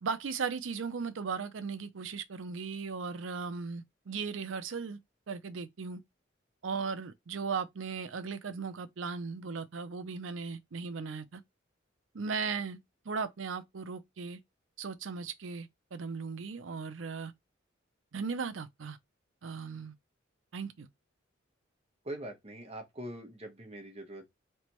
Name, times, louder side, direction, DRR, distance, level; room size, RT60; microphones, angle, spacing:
voice 1, 0.0-5.0 5.3-6.0 6.6-11.4 12.1-12.8 13.1-14.4 14.8-17.3 18.1-19.0 19.4-19.9 20.5-20.9, right 5 dB, 80° right, 0.6 m, -37 dB
voice 2, 22.0-24.3, right 1 dB, 30° right, 1.0 m, -43 dB
4.1 x 3.2 x 3.0 m
head